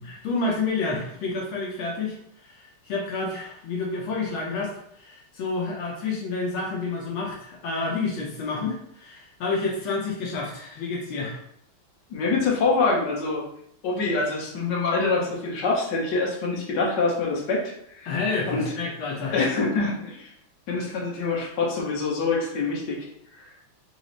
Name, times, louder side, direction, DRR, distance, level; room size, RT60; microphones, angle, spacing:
voice 1, 0.0-2.2 2.4-11.4 18.1-19.5, left 3 dB, 80° left, -2 dB, 1.6 m, -29 dB
voice 2, 12.1-13.4 13.8-18.1 18.5-18.6 19.3-20.3 20.7-23.1, left 3 dB, 65° left, -3 dB, 1.6 m, -25 dB
4.8 x 2.1 x 3.8 m, 0.71 s
omnidirectional pair, 2.2 m